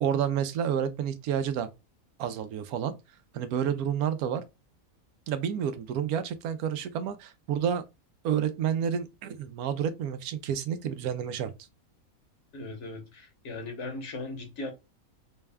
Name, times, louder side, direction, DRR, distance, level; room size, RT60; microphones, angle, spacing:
voice 1, 0.0-1.7 2.2-2.9 3.3-4.4 5.3-7.8 8.2-11.5, right 8 dB, 80° right, 1.1 m, -29 dB
voice 2, 12.5-14.7, left 2 dB, 55° left, 1.2 m, -38 dB
4.1 x 2.2 x 3.4 m
omnidirectional pair, 1.5 m